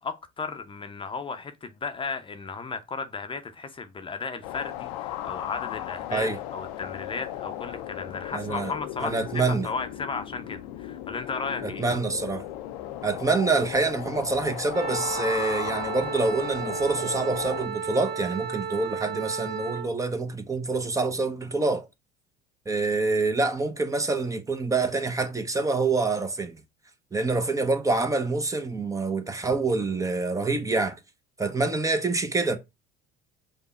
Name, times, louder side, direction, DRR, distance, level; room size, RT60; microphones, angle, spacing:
voice 1, 0.0-11.8, left 4 dB, 30° left, 0.7 m, -35 dB
sound 1, 4.4-17.7, left 13 dB, 75° left, 0.6 m, -36 dB
voice 2, 8.3-8.7 9.0-9.7 11.6-12.4 13.0-21.9 22.7-26.6 27.1-31.0 31.4-32.6, right 3 dB, 15° right, 0.8 m, -26 dB
Wind instrument woodwind instrument, 14.7-19.9, right 6 dB, 55° right, 0.9 m, -33 dB
5.2 x 2.3 x 4.1 m
hypercardioid pair, 70°, 19 cm